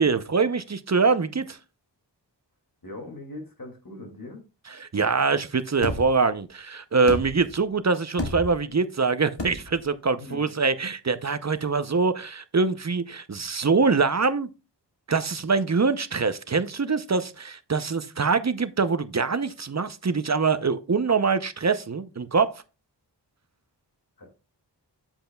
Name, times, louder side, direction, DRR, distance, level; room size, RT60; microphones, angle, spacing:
voice 1, 0.0-1.6 4.8-14.5 15.1-22.5, right 4 dB, 40° right, 0.6 m, -24 dB
voice 2, 2.8-4.4 10.2-10.5 24.2-24.3, left 2 dB, 50° left, 2.3 m, -40 dB
sound 1, 5.8-6.2 7.1-7.6 8.2-8.7 9.4-9.8, left 2 dB, 80° left, 1.6 m, -31 dB
8.8 x 7.8 x 2.2 m
wide cardioid pair, 45°, 43 cm